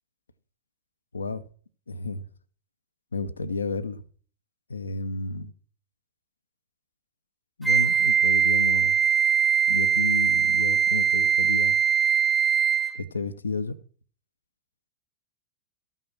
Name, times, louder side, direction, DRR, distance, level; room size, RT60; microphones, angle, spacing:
voice 1, 1.1-1.4 1.9-2.2 3.1-4.0 4.7-5.5 7.6-9.3 9.7-11.8 12.9-13.8, left 4 dB, 75° left, 0.7 m, -32 dB
Wind instrument woodwind instrument, 7.6-13.0, right 7 dB, 5° right, 0.4 m, -21 dB
13.0 x 5.7 x 5.9 m
figure-of-eight pair, 90°, 0 cm